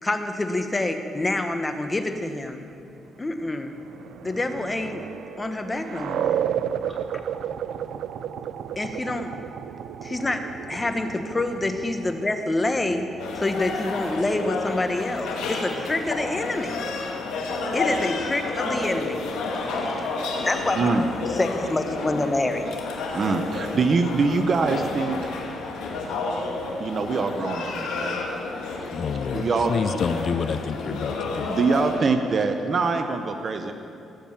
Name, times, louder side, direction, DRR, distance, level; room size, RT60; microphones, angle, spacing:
voice 1, 0.0-2.6 3.2-3.7 4.2-5.0 5.4-6.3 8.8-9.3 10.0-13.0 13.3-16.8 17.7-19.2 19.7-19.9 20.5-20.8 21.4-22.7, left 2 dB, 20° left, 7 dB, 1.1 m, -27 dB
sound 1, 3.5-14.9, right 9 dB, 75° right, 0.4 m, -33 dB
voice 2, 6.9-8.1, equal, 10° right, -2 dB, 2.8 m, -52 dB
sound 2, 13.2-32.0, left 3 dB, 90° left, 1.8 m, -30 dB
voice 3, 23.1-25.2 26.8-28.2 29.3-30.0 30.3-30.4 31.5-33.7, right 4 dB, 45° right, 6 dB, 0.8 m, -24 dB
voice 4, 28.9-31.5, left 6 dB, 55° left, 13 dB, 0.4 m, -28 dB
16.5 x 7.3 x 7.3 m, 2.6 s
cardioid pair, 90°, 0 cm